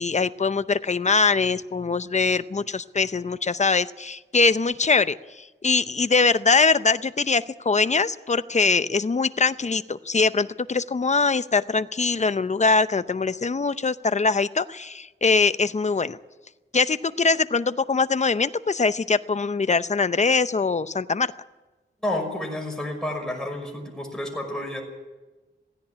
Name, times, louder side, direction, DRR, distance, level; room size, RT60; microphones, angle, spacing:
voice 1, 0.0-16.2 16.7-21.3, left 4 dB, 35° left, 13 dB, 0.7 m, -22 dB
voice 2, 22.0-24.8, left 1 dB, 5° left, 0 dB, 5.8 m, -30 dB
16.5 x 16.5 x 9.9 m, 1.2 s
wide cardioid pair, 120°, 21 cm